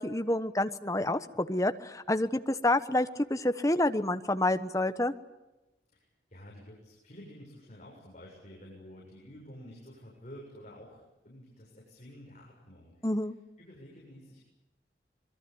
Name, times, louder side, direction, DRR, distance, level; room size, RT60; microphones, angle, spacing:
voice 1, 0.0-5.1 13.0-13.3, left 1 dB, 20° left, 10 dB, 1.1 m, -28 dB
voice 2, 5.9-13.1 13.6-14.4, equal, 40° left, -3 dB, 7.3 m, -50 dB
26.0 x 22.0 x 8.8 m, 1.0 s
head